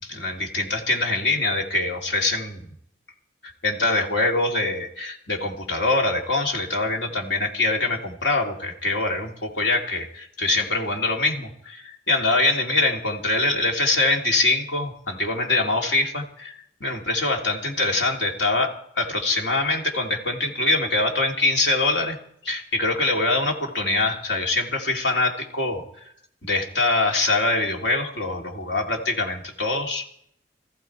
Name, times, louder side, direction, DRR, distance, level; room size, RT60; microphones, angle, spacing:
voice 1, 0.0-2.6 3.6-16.5 16.8-18.7 19.0-22.2 22.4-25.8 26.4-30.0, left 2 dB, 75° left, 1 dB, 2.7 m, -24 dB
19.0 x 14.5 x 4.6 m, 0.68 s
head